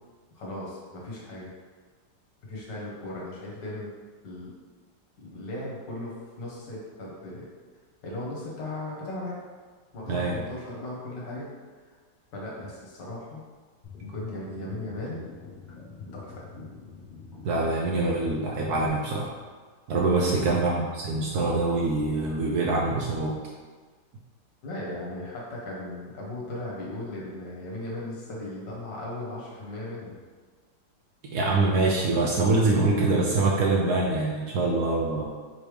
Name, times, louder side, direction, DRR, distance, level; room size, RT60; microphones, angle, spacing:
voice 1, 0.3-1.5 2.4-3.9 4.2-4.5 5.2-7.5 8.0-9.4 9.9-11.5 11.9-12.0 12.3-13.4 14.0-15.2 16.0-16.7 20.1-20.4 24.6-30.2 34.5-34.6, left 1 dB, 70° left, -4 dB, 1.7 m, -37 dB
voice 2, 10.1-10.4 17.4-19.3 19.9-23.4 31.3-35.3, right 3 dB, 70° right, -2 dB, 0.9 m, -24 dB
sound 1, 13.8-18.9, left 4 dB, 55° left, 0.5 m, -45 dB
5.0 x 3.3 x 3.2 m, 1.5 s
omnidirectional pair, 2.0 m